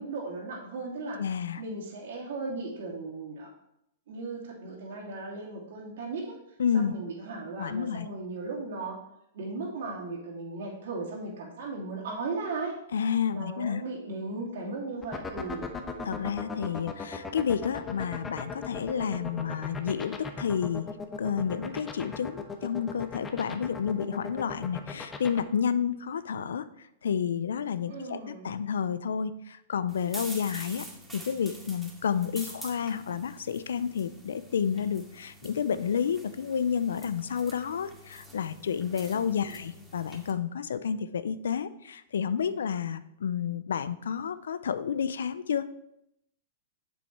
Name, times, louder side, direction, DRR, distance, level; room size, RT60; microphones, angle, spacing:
voice 1, 0.0-1.2 1.6-3.5 4.1-6.4 6.7-9.0 9.3-12.7 13.2-15.7 27.9-28.5 39.1-39.5, right 3 dB, 70° right, -2 dB, 2.9 m, -36 dB
voice 2, 1.2-1.6 6.6-6.9 7.6-8.1 12.9-13.8 16.0-20.9 21.2-26.7 27.0-30.9 31.1-45.7, left 7 dB, 80° left, 15 dB, 0.5 m, -30 dB
sound 1, 15.0-25.4, left 5 dB, 15° left, 1.0 m, -36 dB
sound 2, 29.9-40.3, right 1 dB, 5° right, 2.2 m, -47 dB
7.3 x 7.0 x 4.7 m, 0.80 s
hypercardioid pair, 125°, 0 cm